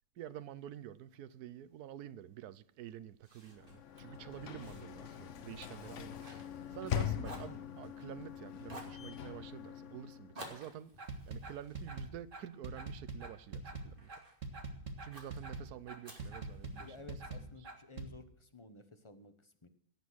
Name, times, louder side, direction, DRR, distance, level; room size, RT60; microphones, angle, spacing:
voice 1, 0.2-6.2 6.7-10.9 11.3-14.1 15.0-16.9, right 11 dB, 70° right, 1.2 m, -48 dB
Fire, 3.2-6.9 7.2-8.3 8.7-9.0 10.3-12.8 13.3-14.4 15.1-15.4 16.0-17.1, right 1 dB, 30° right, 2.7 m, -53 dB
Sliding door / Slam, 3.5-10.5, left 9 dB, 55° left, 1.0 m, -42 dB
voice 2, 5.8-6.2 16.7-19.7, left 3 dB, 20° left, 0.9 m, -54 dB
sound 1, 11.0-18.1, right 3 dB, 50° right, 1.9 m, -43 dB
17.5 x 7.9 x 6.3 m
omnidirectional pair, 1.8 m